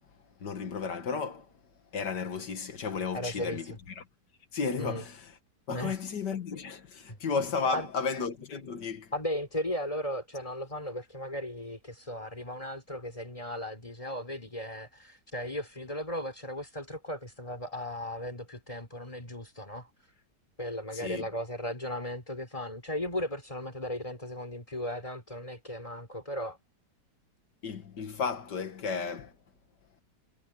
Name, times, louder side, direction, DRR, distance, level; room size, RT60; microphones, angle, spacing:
voice 1, 0.4-1.5 1.9-4.0 4.5-5.2 5.7-9.1 20.9-21.3 27.6-29.3, left 5 dB, 85° left, 2.4 m, -33 dB
voice 2, 3.1-3.8 4.8-5.0 5.7-6.1 7.1-7.2 7.7-7.9 9.1-20.1 20.6-26.6, left 1 dB, 20° left, 4.6 m, -36 dB
omnidirectional pair, 1.8 m